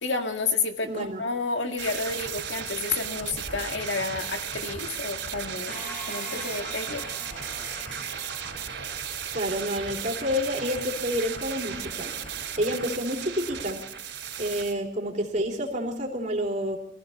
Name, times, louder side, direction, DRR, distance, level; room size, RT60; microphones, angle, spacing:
voice 1, 0.0-7.1, left 4 dB, 90° left, 5 dB, 1.8 m, -30 dB
voice 2, 0.8-1.2 9.3-12.1 12.6-13.8 14.4-16.8, equal, 45° right, 0 dB, 3.2 m, -29 dB
sound 1, 1.8-14.7, right 7 dB, 75° right, 4.0 m, -35 dB
sound 2, 5.7-9.3, equal, 50° left, 8.0 m, -42 dB
22.5 x 15.0 x 4.2 m, 0.66 s
head